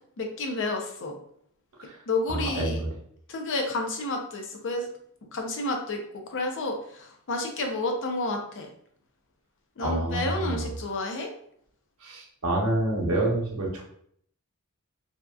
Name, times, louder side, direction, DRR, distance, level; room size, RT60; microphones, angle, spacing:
voice 1, 0.2-1.1 2.1-2.8 3.3-4.9 5.3-6.0 6.3-8.7 9.8-11.3, left 2 dB, 60° left, 3 dB, 0.5 m, -30 dB
voice 2, 2.3-2.9 9.8-10.7 12.0-13.8, right 2 dB, 75° right, -2 dB, 0.7 m, -28 dB
2.7 x 2.3 x 2.2 m, 0.66 s
head